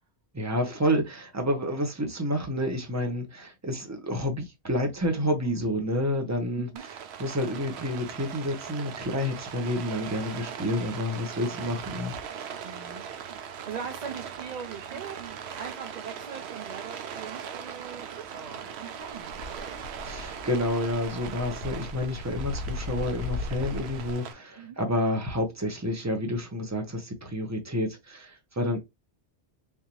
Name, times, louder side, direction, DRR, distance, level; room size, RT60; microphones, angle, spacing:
voice 1, 0.3-6.7 7.2-12.7 20.0-28.8, left 1 dB, 15° right, 0.7 m, -29 dB
Rain, 6.8-24.3, right 8 dB, 75° right, 0.9 m, -40 dB
voice 2, 12.6-13.0 13.4-19.8 24.6-24.8, right 6 dB, 60° right, 0.5 m, -41 dB
sound 1, 19.1-24.1, left 3 dB, 80° left, 0.8 m, -37 dB
3.5 x 2.7 x 2.9 m
omnidirectional pair, 1.1 m